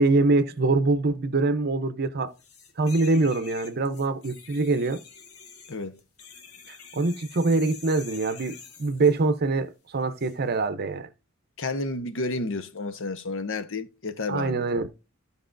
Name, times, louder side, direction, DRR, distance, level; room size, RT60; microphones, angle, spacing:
voice 1, 0.0-2.3 2.8-5.0 6.7-11.1 14.3-14.9, right 3 dB, 50° right, 0.7 m, -24 dB
sound 1, 2.4-9.3 10.2-10.4, left 6 dB, 90° left, 1.6 m, -46 dB
voice 2, 11.6-14.7, left 3 dB, 65° left, 1.0 m, -31 dB
15.0 x 5.4 x 2.5 m
head